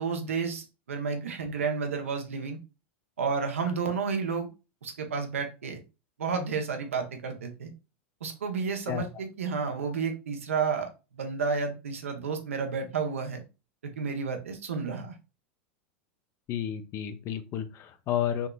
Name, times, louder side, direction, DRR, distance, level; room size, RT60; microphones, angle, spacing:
voice 1, 0.0-2.6 3.2-4.5 4.8-5.8 6.2-7.7 8.2-13.4 13.8-15.1, right 5 dB, 90° right, 5 dB, 0.8 m, -31 dB
voice 2, 16.5-18.5, left 10 dB, 40° left, 9 dB, 0.5 m, -31 dB
3.5 x 2.9 x 2.3 m, 0.29 s
hypercardioid pair, 100°, 7 cm